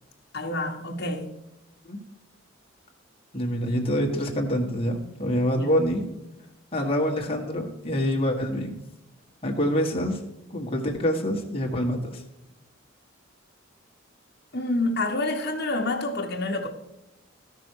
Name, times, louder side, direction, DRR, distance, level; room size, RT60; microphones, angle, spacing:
voice 1, 0.3-1.4 5.6-5.7 14.5-16.7, left 2 dB, 50° left, 2 dB, 1.4 m, -28 dB
voice 2, 3.3-6.0 6.7-8.8 9.4-10.2 10.5-12.2, equal, 25° left, 0 dB, 1.6 m, -26 dB
13.5 x 6.2 x 4.8 m, 0.94 s
head